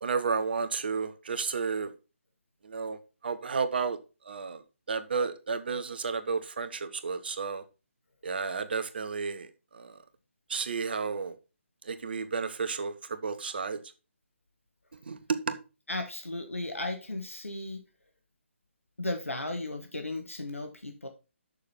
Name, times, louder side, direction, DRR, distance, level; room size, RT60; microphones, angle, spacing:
voice 1, 0.0-1.9 2.6-4.0 4.2-4.6 4.9-7.6 8.2-10.0 10.5-11.3 11.8-13.8 15.1-15.6, right 5 dB, 50° right, 1.1 m, -32 dB
voice 2, 15.9-17.8 19.0-21.1, left 2 dB, 80° left, 1.8 m, -35 dB
6.7 x 6.7 x 5.9 m
figure-of-eight pair, 145°, 7 cm